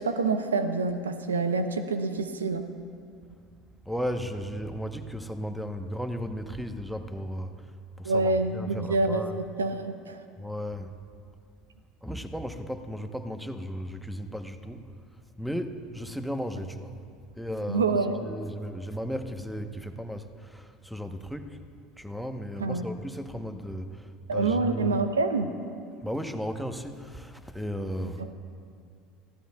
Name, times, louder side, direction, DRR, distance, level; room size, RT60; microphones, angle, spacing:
voice 1, 0.0-2.6 8.0-10.2 17.7-18.2 22.6-22.8 24.3-25.5 28.0-28.3, right 3 dB, 85° right, 9 dB, 0.8 m, -27 dB
voice 2, 3.8-7.7 8.0-9.3 10.4-11.0 12.0-14.9 15.4-16.9 17.4-17.8 18.2-21.7 22.0-25.0 26.0-28.3, equal, ahead, 8 dB, 1.0 m, -35 dB
24.5 x 15.0 x 2.4 m, 2.4 s
hypercardioid pair, 75°, 0 cm